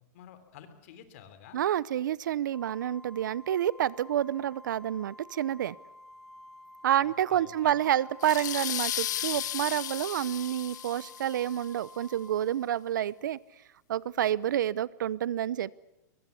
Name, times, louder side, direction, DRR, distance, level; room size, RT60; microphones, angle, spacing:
voice 1, 0.1-1.6 6.9-8.0 9.1-9.3, left 9 dB, 45° left, 10 dB, 3.3 m, -51 dB
voice 2, 1.5-5.8 6.8-13.4 13.9-15.8, right 11 dB, 85° right, 21 dB, 0.8 m, -29 dB
Organ, 2.5-13.3, left 1 dB, ahead, 1.6 m, -51 dB
sound 1, 8.2-11.6, left 12 dB, 70° left, 1.2 m, -35 dB
23.0 x 22.5 x 8.3 m, 0.88 s
supercardioid pair, 175°, 10 cm